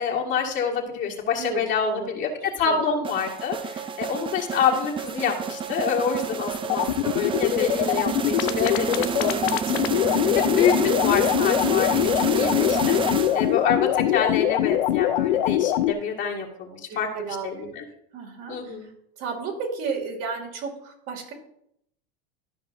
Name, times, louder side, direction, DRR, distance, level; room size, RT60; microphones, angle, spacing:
voice 1, 0.0-9.4 9.9-17.1 17.4-17.8 18.5-18.9, left 6 dB, 40° left, -2 dB, 1.9 m, -27 dB
voice 2, 1.4-2.1 2.6-2.9 8.9-9.6 16.2-16.4 16.9-17.7 18.1-18.9 19.2-21.3, right 5 dB, 55° right, 0 dB, 2.4 m, -33 dB
sound 1, 3.0-13.7, right 6 dB, 20° right, 0.5 m, -29 dB
sound 2, 6.6-15.9, left 13 dB, 80° left, 0.6 m, -22 dB
13.0 x 5.3 x 2.6 m, 0.75 s
supercardioid pair, 115°, 29 cm